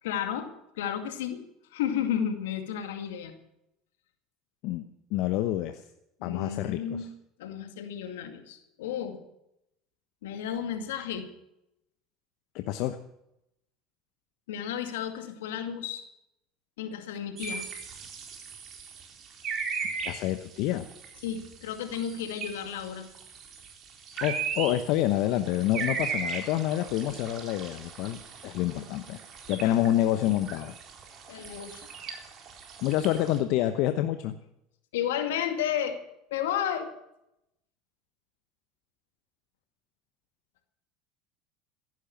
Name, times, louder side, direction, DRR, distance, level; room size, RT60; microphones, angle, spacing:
voice 1, 0.0-0.5 0.8-1.4 1.7-3.3 6.2-7.1 7.4-9.2 10.2-11.3 14.5-16.0 16.8-17.7 21.2-23.1 29.6-29.8 31.3-31.9 34.9-36.0 36.3-36.9, left 9 dB, 80° left, 6 dB, 2.3 m, -32 dB
voice 2, 5.1-5.8 6.2-7.1 12.5-13.0 20.0-20.9 24.2-29.2 29.5-30.7 32.8-34.3, left 13 dB, 65° left, 9 dB, 1.0 m, -27 dB
sound 1, 17.4-33.4, right 5 dB, 45° right, 3.9 m, -38 dB
15.0 x 11.0 x 7.2 m, 0.83 s
hypercardioid pair, 85°, 0 cm